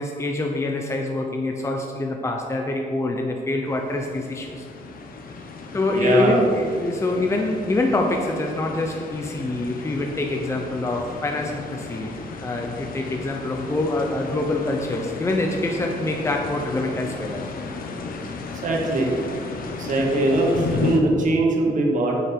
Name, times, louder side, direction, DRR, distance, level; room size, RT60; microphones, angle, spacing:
voice 1, 0.0-4.7 5.7-12.1 12.4-17.4, left 2 dB, 15° left, 2 dB, 0.8 m, -25 dB
sound 1, 3.7-21.0, left 4 dB, 65° left, 1.2 m, -34 dB
voice 2, 5.9-6.4 18.6-19.1 19.8-22.1, right 2 dB, 55° right, -1 dB, 1.9 m, -21 dB
9.8 x 8.3 x 4.6 m, 2.2 s
cardioid pair, 135°, 16 cm